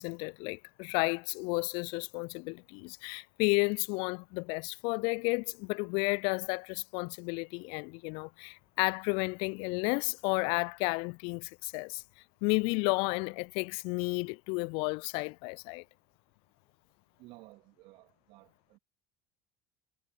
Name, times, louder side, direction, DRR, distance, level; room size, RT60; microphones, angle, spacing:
voice 1, 0.0-12.0 12.4-15.8, left 32 dB, 55° left, 0.4 m, -32 dB
voice 2, 17.2-18.8, right 21 dB, 55° right, 3.1 m, -55 dB
figure-of-eight pair, 65°, 11 cm